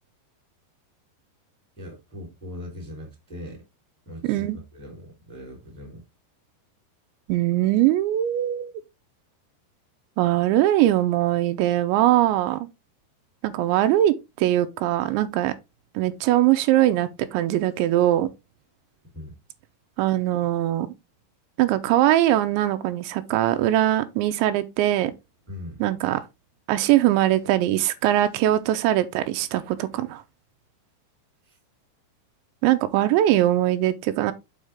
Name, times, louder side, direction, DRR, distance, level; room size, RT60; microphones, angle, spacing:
voice 1, 1.8-3.6 4.0-6.0 19.1-19.3 25.5-25.8 31.4-31.6, left 1 dB, ahead, 2.0 m, -40 dB
voice 2, 7.3-8.7 10.2-12.7 13.4-15.5 16.0-18.3 20.0-20.9 21.6-25.1 25.8-26.2 26.7-30.2 32.6-34.3, right 13 dB, 85° right, 2.9 m, -21 dB
6.6 x 5.5 x 3.5 m
omnidirectional pair, 5.2 m